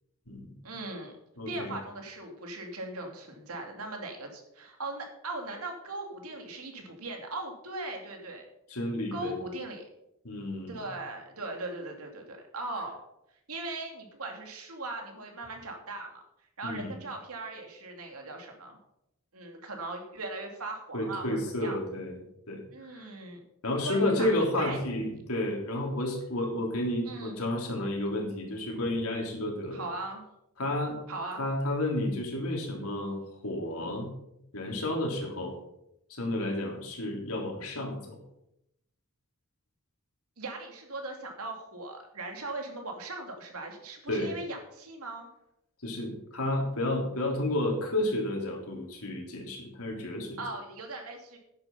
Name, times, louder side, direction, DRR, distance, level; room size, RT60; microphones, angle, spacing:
voice 1, 0.6-1.1 1.5-8.5 9.1-9.8 10.7-13.0 13.5-16.2 16.6-18.8 19.3-21.8 22.7-23.4 23.8-24.3 24.6-24.8 27.0-27.4 29.7-30.2 31.1-31.4 40.4-45.3 50.4-51.4, right 2 dB, 85° right, 2 dB, 2.7 m, -39 dB
voice 2, 1.4-1.7 8.7-9.4 10.2-10.7 16.6-17.0 20.9-22.2 22.5-22.6 22.9-23.1 23.6-29.8 30.6-31.0 31.4-33.2 33.4-34.1 34.5-35.6 36.2-38.2 44.1-44.3 45.8-50.4, left 1 dB, 80° left, 0 dB, 3.6 m, -31 dB
10.5 x 9.0 x 5.6 m, 0.82 s
head